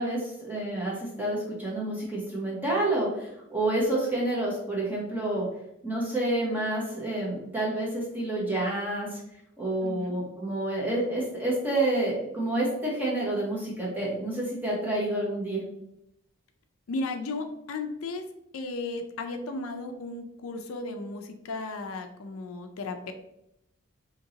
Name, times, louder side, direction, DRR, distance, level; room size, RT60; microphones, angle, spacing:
voice 1, 0.0-5.4 5.8-9.2 9.6-15.6, right 1 dB, 10° right, -5 dB, 1.0 m, -29 dB
voice 2, 9.8-10.1 16.9-18.2 18.5-23.1, left 3 dB, 80° left, 6 dB, 0.4 m, -35 dB
2.8 x 2.8 x 3.8 m, 0.82 s
head